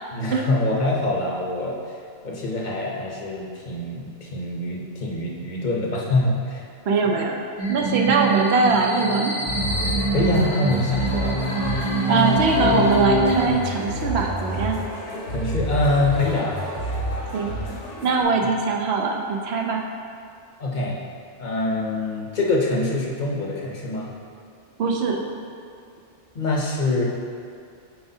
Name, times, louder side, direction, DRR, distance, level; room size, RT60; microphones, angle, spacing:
voice 1, 0.1-1.7 2.2-6.6 7.0-7.2 7.8-8.1 10.1-11.4 15.3-16.6 20.6-21.0 21.4-24.1 26.3-27.0, left 2 dB, 45° left, -2 dB, 0.9 m, -24 dB
voice 2, 6.9-7.4 7.7-9.3 12.1-14.8 17.3-17.5 18.0-19.8 24.8-25.2, right 4 dB, 65° right, 1 dB, 0.9 m, -22 dB
sound 1, 7.6-13.5, right 2 dB, 35° right, 0.9 m, -25 dB
sound 2, 9.5-18.2, left 1 dB, 75° left, 1.4 m, -28 dB
8.0 x 4.7 x 2.7 m, 2.4 s
omnidirectional pair, 1.2 m